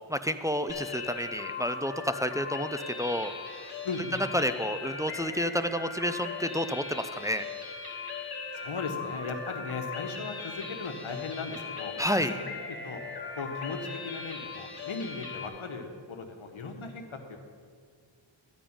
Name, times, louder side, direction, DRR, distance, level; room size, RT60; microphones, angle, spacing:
voice 1, 0.1-3.3 4.3-7.5 12.0-12.3, equal, 5° right, 9 dB, 0.5 m, -30 dB
sound 1, 0.7-15.5, left 5 dB, 50° left, 1.5 m, -39 dB
voice 2, 3.8-4.2 8.5-12.3 12.6-13.0 13.3-17.4, left 4 dB, 80° left, 4 dB, 1.4 m, -37 dB
12.5 x 5.2 x 8.8 m, 2.1 s
wide cardioid pair, 65°, 48 cm